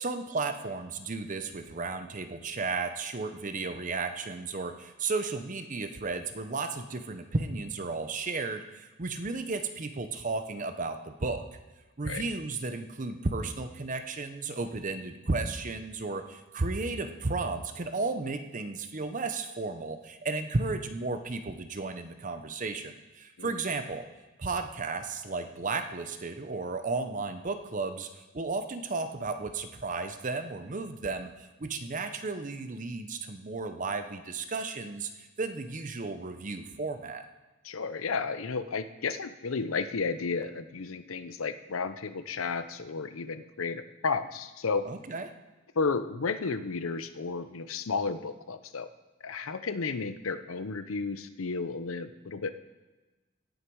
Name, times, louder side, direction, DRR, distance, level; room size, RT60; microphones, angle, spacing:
voice 1, 0.0-11.4 12.0-24.1 24.4-37.2 44.9-45.3, right 3 dB, 40° right, 8 dB, 0.7 m, -34 dB
voice 2, 37.6-44.9 45.8-48.9 49.2-52.5, left 4 dB, 90° left, 11 dB, 0.7 m, -33 dB
17.5 x 6.5 x 4.7 m, 1.2 s
head